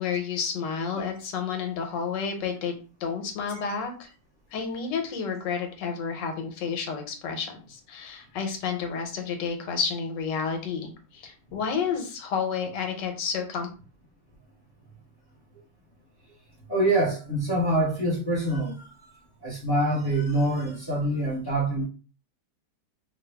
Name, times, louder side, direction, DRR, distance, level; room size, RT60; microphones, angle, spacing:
voice 1, 0.0-2.7 3.0-4.1 4.5-13.7, left 6 dB, 90° left, 1.4 m, -30 dB
voice 2, 16.7-21.8, right 1 dB, 20° left, 0.8 m, -26 dB
3.4 x 2.3 x 3.3 m
omnidirectional pair, 1.9 m